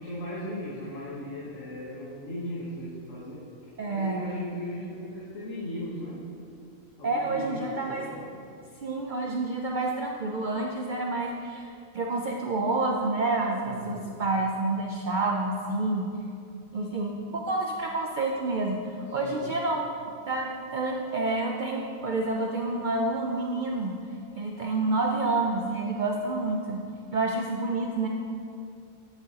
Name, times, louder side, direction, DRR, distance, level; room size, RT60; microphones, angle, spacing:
voice 1, 0.0-6.3 7.0-8.4 13.6-14.1 19.1-19.4, left 1 dB, 65° left, -7 dB, 1.5 m, -37 dB
voice 2, 3.8-4.2 7.0-8.0 8.8-16.1 16.7-19.8 20.3-23.9 24.4-26.8 27.1-28.1, right 2 dB, 80° right, 0 dB, 0.4 m, -28 dB
8.9 x 7.7 x 2.8 m, 2.6 s
omnidirectional pair, 1.4 m